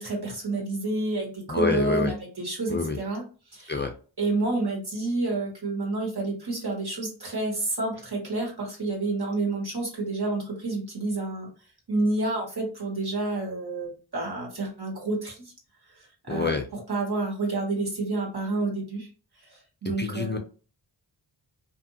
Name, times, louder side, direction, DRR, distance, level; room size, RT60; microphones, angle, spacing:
voice 1, 0.0-3.7 4.2-11.5 11.9-15.5 15.8-16.6 16.9-19.1 19.4-20.4, right 2 dB, 60° right, -1 dB, 1.5 m, -29 dB
voice 2, 1.5-2.1 2.7-3.0 3.7-3.9 16.3-16.7 20.0-20.4, left 4 dB, 25° left, 4 dB, 0.4 m, -27 dB
2.6 x 2.4 x 2.7 m, 0.38 s
cardioid pair, 40°, 45 cm